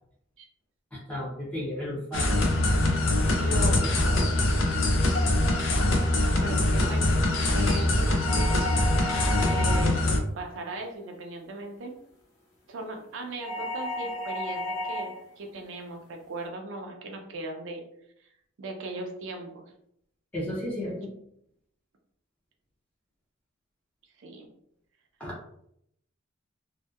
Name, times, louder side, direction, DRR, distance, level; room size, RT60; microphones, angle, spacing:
voice 1, 0.9-2.3 6.4-6.5 20.3-21.1 25.2-25.3, left 1 dB, 5° left, -6 dB, 0.5 m, -33 dB
sound 1, 2.1-10.2, left 1 dB, 65° left, 0.4 m, -23 dB
voice 2, 3.4-4.0 6.2-7.1 7.5-8.6 9.4-11.9 12.7-17.8 18.2-18.3 18.6-19.6 24.2-24.5, right 2 dB, 65° right, 2 dB, 0.4 m, -38 dB
sound 2, 8.2-10.1 13.4-15.2, left 1 dB, 90° left, 0.9 m, -33 dB
2.6 x 2.1 x 2.2 m, 0.73 s
head